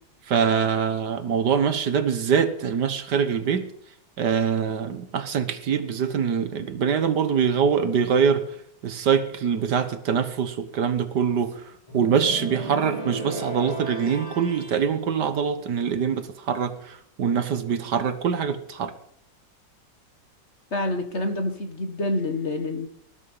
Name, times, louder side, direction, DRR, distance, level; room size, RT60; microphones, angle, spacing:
voice 1, 0.3-3.7 4.2-8.6 8.8-18.9, right 7 dB, 65° right, 1.8 m, -24 dB
sound 1, 11.9-14.9, right 2 dB, 15° left, 6.8 m, -35 dB
voice 2, 20.7-22.9, left 2 dB, 40° left, 1.9 m, -27 dB
19.5 x 11.0 x 5.5 m
omnidirectional pair, 2.0 m